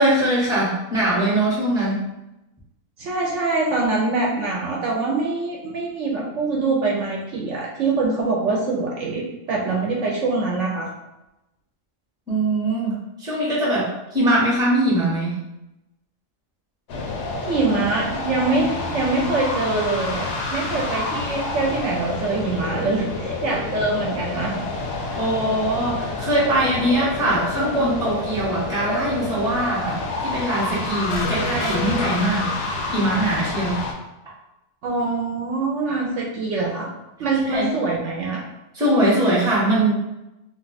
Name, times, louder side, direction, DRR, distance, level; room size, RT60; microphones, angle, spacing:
voice 1, 0.0-2.1 12.3-15.4 25.1-32.5 32.9-33.8 37.5-37.7 38.7-39.9, right 1 dB, 5° right, -6 dB, 0.7 m, -21 dB
voice 2, 3.0-10.9 17.5-24.6 25.1-25.2 34.8-36.9 37.2-38.4, right 3 dB, 70° right, -2 dB, 0.8 m, -24 dB
sound 1, 16.9-33.9, left 3 dB, 60° left, 0.7 m, -28 dB
sound 2, 31.1-33.1, left 2 dB, 80° left, 1.0 m, -30 dB
2.4 x 2.3 x 3.9 m, 0.92 s
omnidirectional pair, 1.5 m